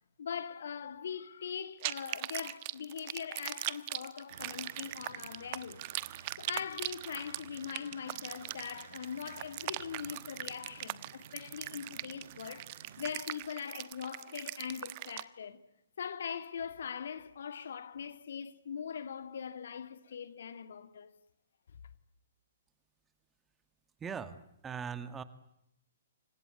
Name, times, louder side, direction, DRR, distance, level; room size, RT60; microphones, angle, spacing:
voice 1, 0.2-5.8 6.4-15.6 16.0-21.1, left 7 dB, 60° left, 2.0 m, -41 dB
sound 1, 1.8-15.2, right 20 dB, 35° right, 1.2 m, -40 dB
sound 2, 4.3-13.2, right 6 dB, 55° right, 5.2 m, -55 dB
voice 2, 24.0-25.2, right 6 dB, 15° right, 2.0 m, -40 dB
29.0 x 25.0 x 8.3 m
figure-of-eight pair, 120°, 0 cm